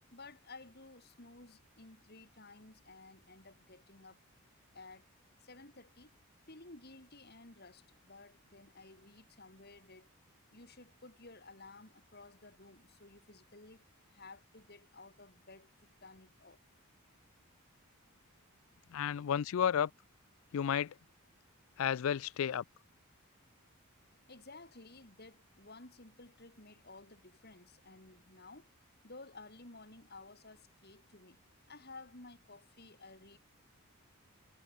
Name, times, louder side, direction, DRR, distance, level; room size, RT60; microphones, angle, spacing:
voice 1, 0.1-4.2 4.7-5.1 5.4-6.1 6.5-10.1 10.5-13.8 14.1-15.7 16.0-16.6 24.3-28.7 29.0-31.4 31.7-33.4, left 3 dB, 45° left, 4.2 m, -55 dB
voice 2, 18.9-19.9 20.5-20.9 21.8-22.6, left 8 dB, 70° left, 0.4 m, -32 dB
head